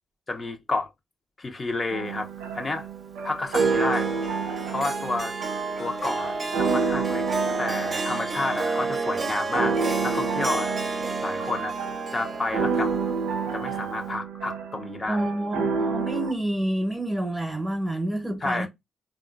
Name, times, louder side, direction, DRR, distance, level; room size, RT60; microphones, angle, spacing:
voice 1, 0.3-0.9 1.4-2.9 3.2-4.1 4.7-5.3 5.8-7.2 7.6-9.7 10.0-10.7 11.2-11.7 12.1-12.9 13.5-15.2 18.4-18.7, left 3 dB, 40° left, 0.6 m, -30 dB
sound 1, 1.9-16.3, right 5 dB, 85° right, 0.5 m, -30 dB
Harp, 3.5-14.1, right 3 dB, 45° right, 0.6 m, -30 dB
voice 2, 15.1-18.7, right 1 dB, 15° right, 0.8 m, -28 dB
3.5 x 2.3 x 2.4 m
hypercardioid pair, 45°, 0 cm